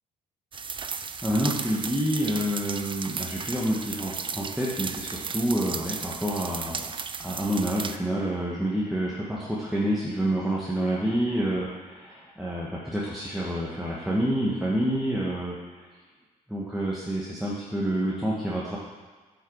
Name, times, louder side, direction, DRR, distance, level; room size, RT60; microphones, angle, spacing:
sound 1, 0.5-8.0, right 5 dB, 25° right, 0.5 m, -35 dB
voice 1, 1.2-6.8 7.2-15.9 16.5-18.8, right 1 dB, ahead, -6 dB, 1.8 m, -28 dB
8.3 x 5.6 x 4.8 m, 1.3 s
figure-of-eight pair, 45°, 21 cm